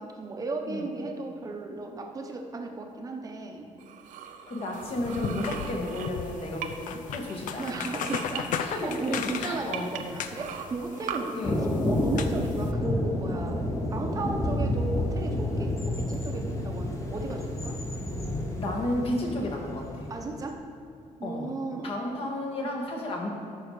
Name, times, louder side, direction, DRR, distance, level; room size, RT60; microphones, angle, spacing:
voice 1, 0.0-3.7 7.6-11.4 11.8-17.8 20.1-20.7 21.2-21.9 22.6-22.7, right 3 dB, 25° right, 2 dB, 0.9 m, -35 dB
sound 1, 3.8-6.9 7.2-8.4 9.1-9.2 9.7-11.2, right 9 dB, 80° right, 0.7 m, -39 dB
voice 2, 4.5-7.7 8.6-9.9 11.3-11.6 18.5-20.1 21.2-21.5 21.8-23.3, left 1 dB, 45° left, 0 dB, 1.7 m, -32 dB
sound 2, 4.7-12.7, left 7 dB, 80° left, 0.6 m, -37 dB
Thunder, 11.4-20.4, left 1 dB, 25° left, 1.2 m, -30 dB
13.5 x 5.7 x 4.9 m, 2.5 s
cardioid pair, 145°, 13 cm